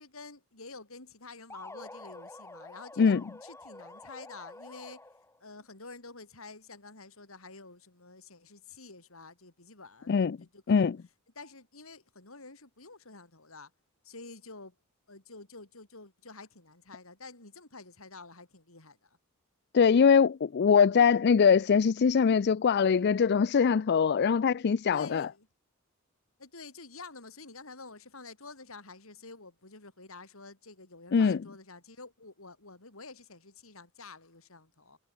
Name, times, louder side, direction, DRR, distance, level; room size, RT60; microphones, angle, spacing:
voice 1, 0.0-5.0 5.4-10.9 11.3-13.7 14.0-14.7 15.1-19.2 24.9-25.5 26.4-35.0, left 3 dB, 75° left, 4.8 m, -49 dB
sound 1, 1.5-5.4, left 2 dB, 15° left, 2.5 m, -48 dB
voice 2, 10.1-10.4 10.7-11.0 19.7-25.3 31.1-31.4, left 6 dB, 50° left, 0.4 m, -22 dB
head